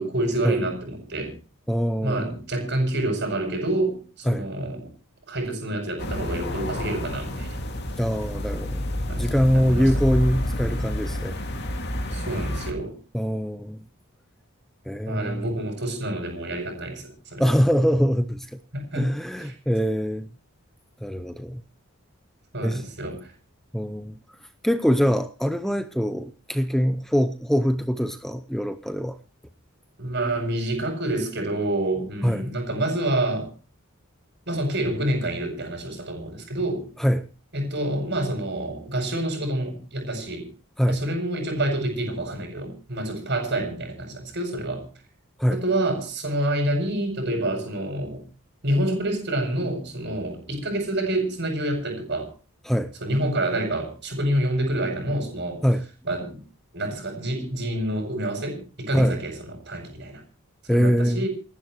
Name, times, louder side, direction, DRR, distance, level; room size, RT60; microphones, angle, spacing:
voice 1, 0.0-1.3 2.0-4.9 5.3-7.6 9.1-9.9 12.1-13.0 15.1-17.4 18.7-19.1 19.4-19.5 22.5-23.3 30.0-33.5 34.5-36.9 37.5-40.5 40.9-44.9 45.5-48.2 48.6-52.3 53.0-55.6 56.0-56.4 56.7-60.2 60.6-61.3, right 1 dB, 50° right, 0 dB, 6.8 m, -27 dB
voice 2, 1.7-2.3 4.3-4.4 8.0-8.8 9.2-11.4 13.1-13.8 14.9-15.4 17.4-18.5 18.9-20.3 21.0-21.6 22.6-22.8 23.7-24.2 24.6-29.2 32.2-32.5 37.0-37.3 40.8-41.0 45.4-45.6 52.6-52.9 55.6-55.8 58.9-59.2 60.7-61.2, equal, ahead, 10 dB, 0.7 m, -23 dB
sound 1, 6.0-12.7, left 1 dB, 50° left, 2.4 m, -29 dB
29.0 x 11.0 x 3.1 m, 0.36 s
head